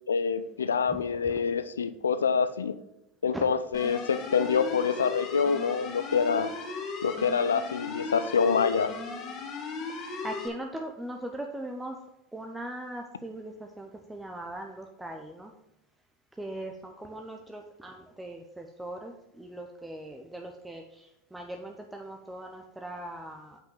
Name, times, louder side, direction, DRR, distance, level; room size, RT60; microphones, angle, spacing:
voice 1, 0.1-2.7 3.2-6.5 7.0-8.9, left 6 dB, 90° left, 12 dB, 0.5 m, -26 dB
voice 2, 0.9-1.4 3.3-3.4 9.9-12.0 12.3-15.5 16.4-23.6, right 1 dB, 10° right, 2 dB, 0.9 m, -40 dB
sound 1, 3.7-10.5, left 4 dB, 40° left, 1.7 m, -37 dB
5.7 x 5.6 x 6.3 m, 0.87 s
hypercardioid pair, 90°, 0 cm